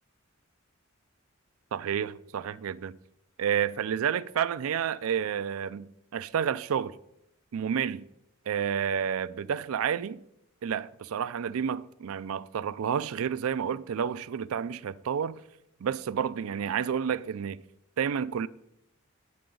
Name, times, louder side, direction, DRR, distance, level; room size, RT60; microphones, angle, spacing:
voice 1, 1.7-3.0 3.4-7.0 7.5-8.0 8.5-10.2 10.6-15.4 15.8-17.6 18.0-18.5, right 8 dB, 80° right, 0.4 m, -30 dB
10.5 x 7.9 x 3.8 m
head